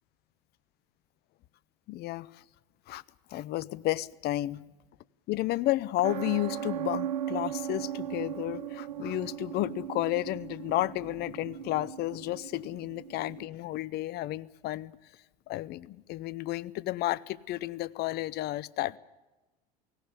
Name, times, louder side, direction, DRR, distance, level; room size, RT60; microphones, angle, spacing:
voice 1, 1.9-2.4 2.9-3.0 3.3-4.6 5.3-14.9 15.5-19.0, left 16 dB, 50° left, 21 dB, 0.7 m, -32 dB
sound 1, 6.0-13.5, right 11 dB, 80° right, 1.0 m, -37 dB
17.5 x 17.5 x 9.8 m, 1.1 s
hypercardioid pair, 80°, 21 cm